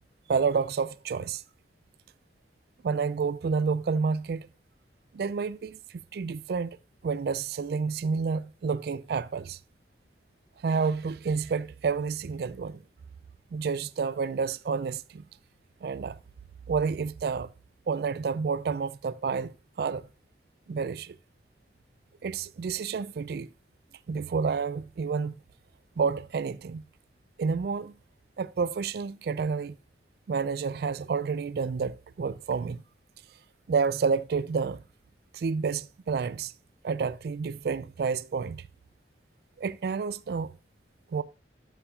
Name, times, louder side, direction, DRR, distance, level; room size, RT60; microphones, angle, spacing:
voice 1, 0.3-1.4 2.8-4.5 5.1-6.8 7.0-9.6 10.6-12.8 13.5-15.2 15.8-16.2 16.7-17.5 17.9-20.1 20.7-21.2 22.2-23.5 24.1-25.3 26.0-26.8 27.4-27.9 28.4-29.8 30.3-32.8 33.7-34.8 35.3-36.5 36.8-38.6 39.6-40.5 41.1-41.2, right 5 dB, 60° right, 0.3 m, -29 dB
11.5 x 7.0 x 2.4 m
head